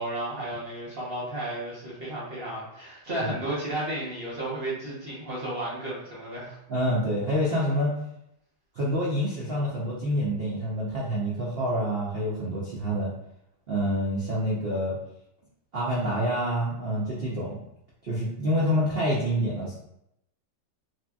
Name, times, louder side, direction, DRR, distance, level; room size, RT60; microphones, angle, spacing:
voice 1, 0.0-6.6, right 1 dB, 45° right, -7 dB, 0.8 m, -33 dB
voice 2, 6.7-7.9 8.8-13.1 13.7-15.0 15.7-17.6 18.0-19.8, equal, 80° right, -6 dB, 0.5 m, -27 dB
2.8 x 2.8 x 2.3 m, 0.79 s
omnidirectional pair, 1.9 m